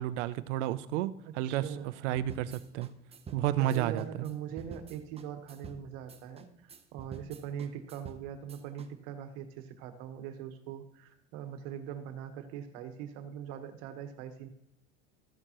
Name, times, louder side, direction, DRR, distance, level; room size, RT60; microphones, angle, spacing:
voice 1, 0.0-2.9 3.3-4.3, right 12 dB, 90° right, 15 dB, 0.6 m, -31 dB
voice 2, 1.2-2.1 3.6-14.5, right 9 dB, 70° right, 8 dB, 1.3 m, -42 dB
sound 1, 2.2-8.9, right 5 dB, 15° right, 0.7 m, -49 dB
14.5 x 6.6 x 3.0 m, 0.81 s
supercardioid pair, 125°, 35 cm